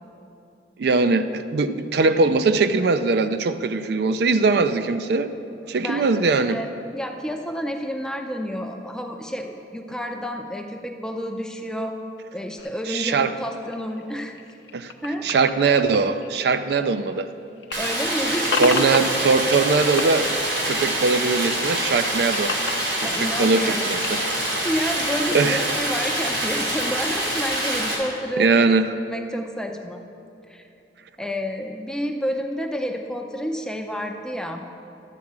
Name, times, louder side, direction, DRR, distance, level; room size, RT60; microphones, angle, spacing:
voice 1, 0.8-5.3 5.7-6.6 12.9-13.3 14.7-14.9 15.2-17.3 18.6-20.3 20.7-22.5 23.0-24.2 25.3-25.7 28.4-28.9, right 4 dB, 65° right, 10 dB, 0.4 m, -21 dB
voice 2, 5.8-6.7 6.9-12.0 12.3-14.4 15.0-15.3 17.8-18.9 23.0-23.8 24.6-28.8 29.1-30.0 30.5-30.7 31.2-34.6, equal, 5° left, 3 dB, 0.5 m, -30 dB
sound 1, 12.6-17.3 17.6-19.7 19.9-21.4 21.7-24.4, left 5 dB, 80° left, 0.6 m, -33 dB
Stream, 17.7-27.9, right 1 dB, 90° right, 2.7 m, -25 dB
11.5 x 4.7 x 7.4 m, 2.8 s
head